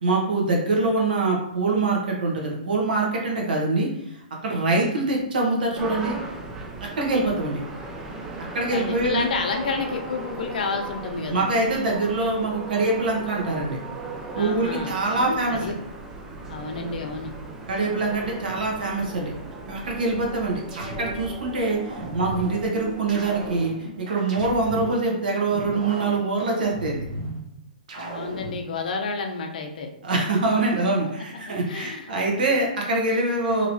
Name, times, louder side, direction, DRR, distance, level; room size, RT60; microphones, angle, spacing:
voice 1, 0.0-6.2 6.8-7.6 8.5-9.2 11.3-13.8 14.4-15.6 17.7-19.3 19.7-27.0 30.0-33.7, right 2 dB, 75° right, -1 dB, 1.1 m, -24 dB
sound 1, 5.7-23.7, right 3 dB, 10° right, 0.3 m, -37 dB
voice 2, 8.7-11.5 14.3-15.8 16.5-17.3 28.0-29.9 31.6-32.1, left 4 dB, 65° left, 3 dB, 0.6 m, -30 dB
sound 2, 20.1-21.4 21.9-22.6 23.1-25.0 25.5-27.4 27.9-28.6, right 1 dB, 55° right, 0.9 m, -36 dB
3.1 x 2.8 x 2.6 m, 0.80 s
hypercardioid pair, 155°, 5 cm